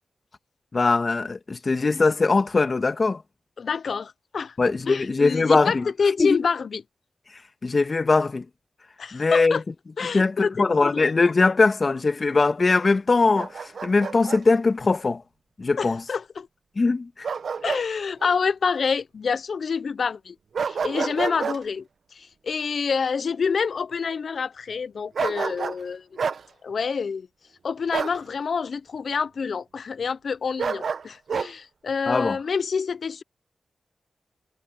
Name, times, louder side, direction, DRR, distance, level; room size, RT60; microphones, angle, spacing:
voice 1, 0.7-3.2 4.6-5.9 6.2-6.5 7.6-8.5 9.1-9.6 10.1-15.2 15.6-16.0 16.8-17.3 32.1-32.4, left 3 dB, 50° left, 1.9 m, -21 dB
voice 2, 3.6-4.6 4.9-6.8 9.0-9.6 10.0-10.5 10.8-11.1 15.8-16.5 17.6-20.4 20.6-26.2 26.6-27.3 27.6-33.2, left 5 dB, 70° left, 0.8 m, -27 dB
Bark, 13.4-14.4 17.2-17.9 18.2-18.4 20.5-21.6 25.2-25.8 26.2-26.4 27.9-28.2 30.6-31.5, right 6 dB, 75° right, 1.5 m, -28 dB
supercardioid pair, 40°, 0 cm